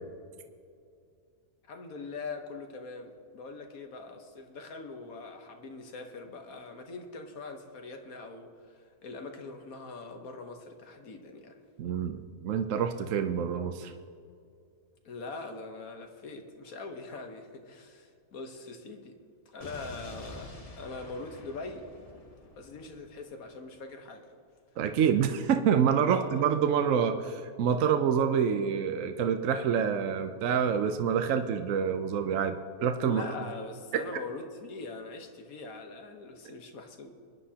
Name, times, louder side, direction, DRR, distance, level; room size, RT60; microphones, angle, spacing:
voice 1, 1.7-11.6 15.0-19.2 19.5-21.9 22.6-24.3 26.1-26.3 33.0-37.1, left 3 dB, 65° left, 4 dB, 1.5 m, -42 dB
voice 2, 11.8-13.9 24.8-33.2, right 7 dB, 65° right, 7 dB, 0.9 m, -27 dB
Explosion, 19.6-23.6, left 2 dB, 25° left, 1.0 m, -48 dB
26.0 x 9.9 x 2.8 m, 2.4 s
omnidirectional pair, 1.6 m